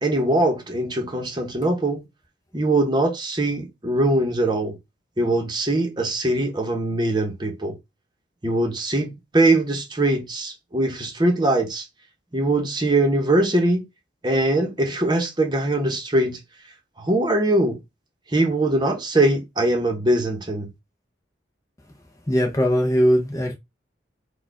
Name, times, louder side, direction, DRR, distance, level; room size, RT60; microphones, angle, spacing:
voice 1, 0.0-2.0 2.5-4.8 5.2-7.7 8.4-11.9 12.3-13.8 14.2-16.4 17.0-17.8 18.3-20.7, right 1 dB, 25° right, 0.9 m, -22 dB
voice 2, 22.3-23.5, equal, 20° left, 0.6 m, -20 dB
4.5 x 2.4 x 4.7 m
head